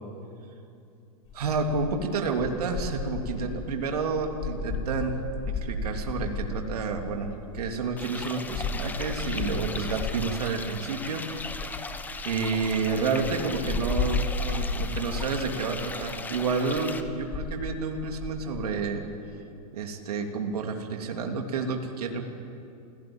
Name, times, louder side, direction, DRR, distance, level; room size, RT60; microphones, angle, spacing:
sound 1, 1.3-10.4 11.3-18.8, left 3 dB, 30° left, 3.6 m, -34 dB
voice 1, 1.3-5.1 5.4-7.3 7.5-11.2 12.2-19.0 19.7-22.2, right 4 dB, 80° right, 3 dB, 3.3 m, -30 dB
sound 2, 8.0-17.0, left 3 dB, 10° left, 1.2 m, -38 dB
28.0 x 18.0 x 9.1 m, 2.6 s
hypercardioid pair, 140°, 19 cm